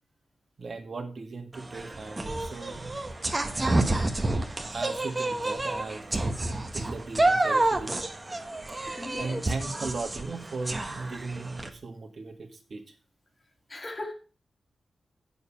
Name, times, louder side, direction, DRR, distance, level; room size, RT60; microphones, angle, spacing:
voice 1, 0.6-3.0 3.7-4.1 4.7-8.0 9.2-12.8, right 3 dB, 50° right, 5 dB, 1.9 m, -37 dB
sound 1, 1.5-11.7, right 2 dB, 20° right, 1.2 m, -29 dB
voice 2, 9.0-9.5 13.7-14.1, left 2 dB, 25° left, 4 dB, 2.1 m, -38 dB
9.4 x 7.1 x 5.8 m, 0.37 s
wide cardioid pair, 155°, 0 cm